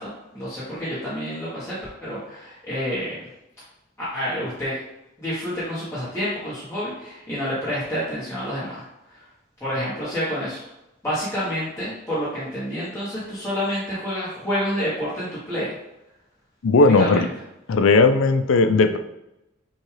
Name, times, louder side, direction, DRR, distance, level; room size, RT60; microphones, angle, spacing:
voice 1, 0.0-3.2 4.0-4.8 5.2-9.2 9.6-10.6 11.0-15.7 16.8-17.3, equal, 15° left, -11 dB, 1.2 m, -28 dB
voice 2, 16.6-17.3 17.7-19.0, left 3 dB, 75° left, 9 dB, 0.4 m, -17 dB
6.3 x 2.4 x 3.2 m, 0.91 s
head